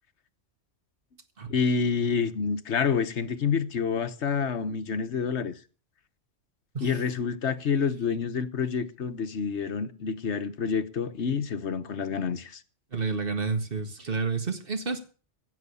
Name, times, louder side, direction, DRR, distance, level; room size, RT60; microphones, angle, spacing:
voice 1, 1.5-5.6 6.8-12.6, left 6 dB, 70° left, 1.3 m, -28 dB
voice 2, 12.9-15.0, right 4 dB, 50° right, 2.0 m, -30 dB
16.0 x 7.6 x 6.9 m
omnidirectional pair, 1.2 m